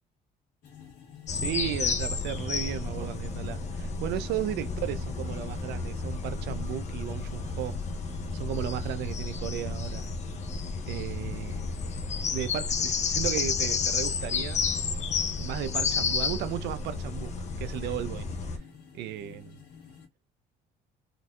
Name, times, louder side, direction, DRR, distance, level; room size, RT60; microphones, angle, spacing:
sound 1, 0.6-20.1, left 6 dB, 85° left, 1.7 m, -50 dB
sound 2, 1.3-18.6, left 5 dB, 40° left, 0.7 m, -31 dB
voice 1, 1.3-7.8 8.3-10.1 10.9-11.7 12.3-14.6 15.4-17.3 17.6-18.3 18.9-19.6, right 12 dB, 80° right, 0.6 m, -35 dB
3.9 x 2.6 x 2.3 m
cardioid pair, 110°, 17 cm